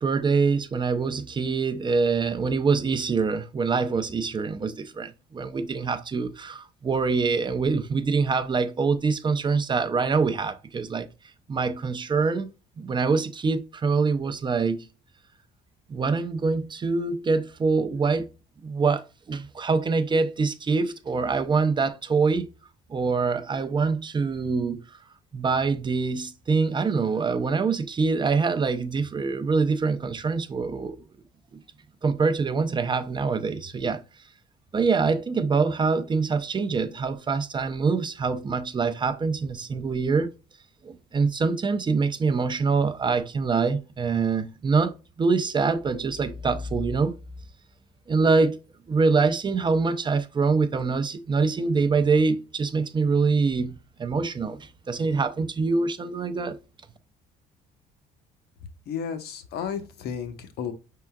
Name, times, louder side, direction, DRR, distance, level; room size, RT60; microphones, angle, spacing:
voice 1, 0.0-11.1 11.5-14.8 15.9-18.3 18.6-22.5 22.9-24.8 25.3-31.0 31.5-31.6 32.0-34.0 34.7-40.3 40.8-47.1 48.1-48.6 48.9-56.6, right 4 dB, 25° right, 0.5 m, -25 dB
voice 2, 58.9-60.7, left 7 dB, 70° left, 1.0 m, -33 dB
5.6 x 3.7 x 2.3 m
cardioid pair, 110°, 17 cm